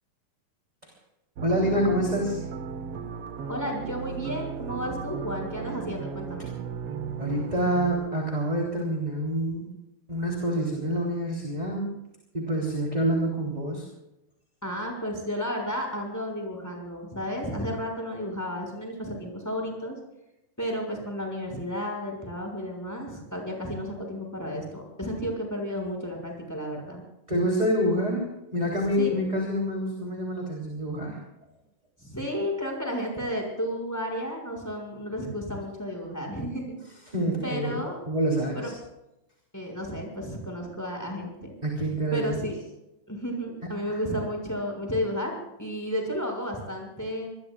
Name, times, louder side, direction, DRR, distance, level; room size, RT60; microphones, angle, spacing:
voice 1, 1.4-2.4 7.2-9.6 10.1-11.8 12.3-13.9 24.0-24.1 27.3-28.3 28.5-31.2 37.1-37.8 38.1-38.7 41.6-42.4 43.9-44.0, equal, 10° right, -1 dB, 3.4 m, -27 dB
sound 1, 1.4-7.9, right 6 dB, 60° right, 1.7 m, -36 dB
voice 2, 3.5-6.5 14.6-19.9 20.6-27.0 29.0-29.2 32.0-36.7 37.4-38.0 38.5-38.7 39.5-41.6 42.1-42.6 43.1-47.3, equal, 5° left, 1 dB, 6.5 m, -32 dB
26.0 x 21.0 x 2.5 m, 0.89 s
omnidirectional pair, 3.8 m